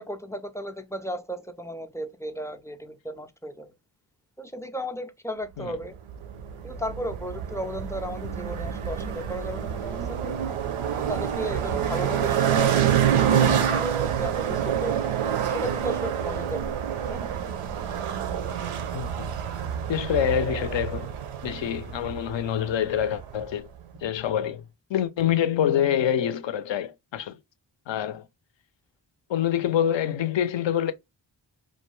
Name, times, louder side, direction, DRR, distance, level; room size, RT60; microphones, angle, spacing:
voice 1, 0.0-3.7 4.4-6.0 6.6-10.3 11.0-12.9 13.3-15.0 15.5-16.6 17.1-17.2, equal, 5° left, 0.3 m, -35 dB
sound 1, 6.1-23.5, right 9 dB, 90° right, 0.6 m, -27 dB
voice 2, 18.9-19.3 19.9-21.1 21.4-23.7 24.0-24.6 24.9-27.4 27.9-28.2 29.3-30.9, left 10 dB, 65° left, 0.5 m, -26 dB
2.5 x 2.2 x 3.0 m
cardioid pair, 50°, 48 cm